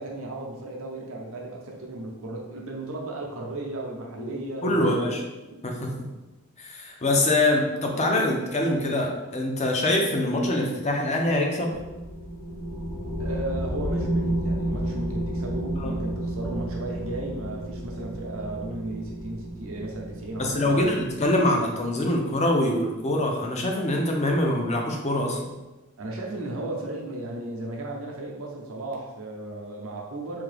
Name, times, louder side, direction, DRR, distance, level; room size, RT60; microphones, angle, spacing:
voice 1, 0.0-5.2 6.0-6.1 13.2-21.0 26.0-30.4, right 2 dB, 65° right, -1 dB, 0.8 m, -35 dB
voice 2, 4.6-5.2 5.6-5.9 6.6-11.7 15.8-15.9 20.4-25.5, left 1 dB, 30° left, 1 dB, 0.6 m, -24 dB
sound 1, 11.7-21.7, right 1 dB, 65° left, 0.7 m, -31 dB
3.6 x 2.8 x 3.3 m, 1.1 s
head